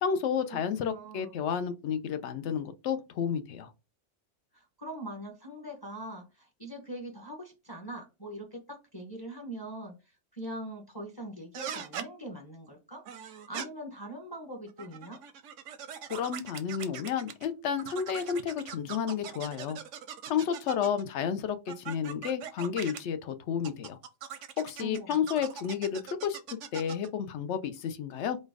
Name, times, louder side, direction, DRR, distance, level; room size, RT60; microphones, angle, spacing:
voice 1, 0.0-3.7 16.1-19.8 20.3-24.0 24.6-26.4 26.7-28.4, left 7 dB, 70° left, 0.9 m, -31 dB
voice 2, 0.5-1.3 4.5-15.2 24.8-25.1, right 1 dB, 20° left, 1.0 m, -42 dB
sound 1, 11.5-12.1 13.0-13.7 14.7-17.5 17.8-21.0 21.7-23.0 23.6-27.1, right 8 dB, 90° right, 1.0 m, -41 dB
4.3 x 2.3 x 4.7 m
omnidirectional pair, 1.2 m